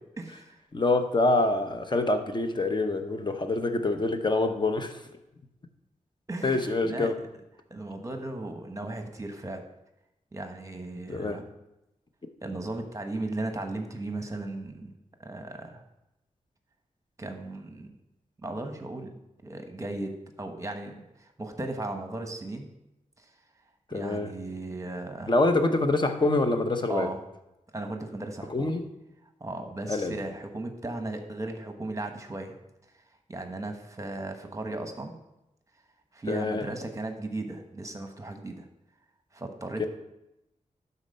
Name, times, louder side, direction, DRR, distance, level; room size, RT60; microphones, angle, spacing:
voice 1, 0.2-0.6 6.3-7.1 7.7-9.6 10.3-11.4 12.4-14.9 15.2-15.8 17.2-18.0 18.4-19.1 19.4-22.7 23.2-23.3 23.9-25.3 26.9-27.2 27.7-28.7 29.4-32.5 32.9-33.0 33.3-35.1 36.1-38.7 39.3-39.9, right 2 dB, 25° right, 5 dB, 1.1 m, -36 dB
voice 2, 0.7-5.0 6.4-7.1 11.1-11.4 23.9-24.3 25.3-27.1 28.5-28.8 29.9-30.2 36.3-36.7 39.8-39.9, left 2 dB, 35° left, 7 dB, 0.9 m, -26 dB
11.5 x 4.2 x 5.5 m, 0.90 s
wide cardioid pair, 90°, 14 cm